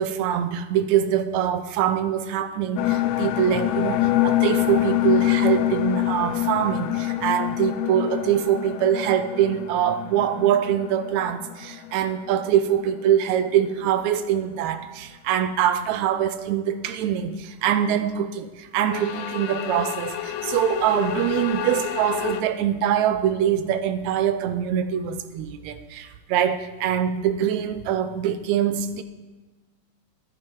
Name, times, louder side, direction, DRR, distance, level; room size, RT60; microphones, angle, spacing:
voice 1, 0.0-29.0, right 10 dB, 80° right, 1.9 m, -24 dB
sound 1, 2.8-12.5 12.8-12.9 18.8-22.4, left 14 dB, 80° left, 1.8 m, -26 dB
11.0 x 10.5 x 4.6 m
omnidirectional pair, 3.4 m